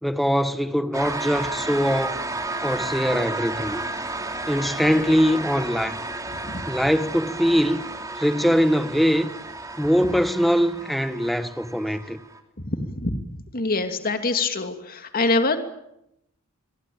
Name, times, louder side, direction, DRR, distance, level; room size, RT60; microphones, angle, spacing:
voice 1, 0.0-2.2 2.6-3.8 4.5-6.0 6.7-7.8 8.2-9.3 9.8-12.2, equal, ahead, 1.3 m, -22 dB
sound 1, 0.9-12.4, right 2 dB, 15° right, 3.3 m, -32 dB
voice 2, 12.6-13.2 13.5-15.6, left 3 dB, 45° left, 2.7 m, -24 dB
28.0 x 22.5 x 8.8 m
head